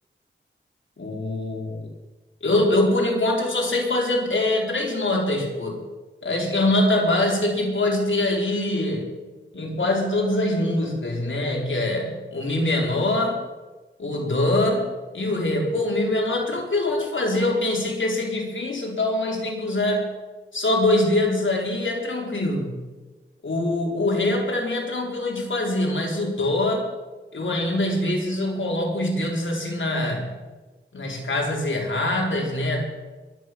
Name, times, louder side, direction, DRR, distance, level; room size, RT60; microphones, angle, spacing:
voice 1, 1.0-1.9 2.4-5.8 6.2-9.1 9.5-13.4 14.0-14.9 15.1-20.1 20.5-22.8 23.4-26.8 27.3-30.3 30.9-32.9, left 1 dB, 70° left, -1 dB, 4.3 m, -23 dB
22.5 x 9.1 x 6.2 m, 1.2 s
wide cardioid pair, 75°, 20 cm